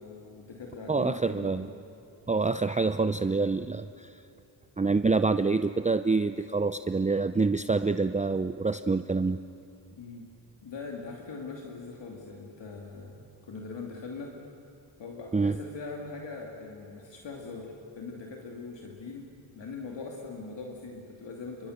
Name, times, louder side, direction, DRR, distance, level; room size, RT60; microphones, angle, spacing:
voice 1, 0.0-1.7 9.9-10.3 10.6-14.3 15.0-21.7, left 4 dB, 70° left, 0 dB, 2.7 m, -41 dB
voice 2, 0.9-1.7 2.3-4.1 4.8-9.4 15.3-15.6, right 4 dB, 15° right, 10 dB, 0.6 m, -26 dB
29.0 x 24.5 x 6.7 m, 2.7 s
cardioid pair, 80°, 46 cm